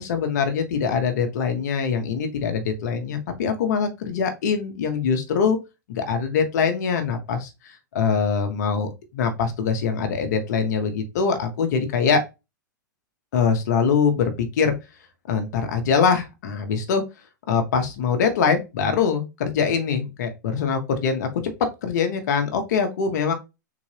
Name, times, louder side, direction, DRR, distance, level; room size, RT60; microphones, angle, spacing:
voice 1, 0.0-5.6 5.9-12.2 13.3-14.7 15.3-17.0 17.5-21.3 21.8-23.3, left 6 dB, 60° left, 0.9 m, -23 dB
3.8 x 2.5 x 3.3 m
hypercardioid pair, 110°, 10 cm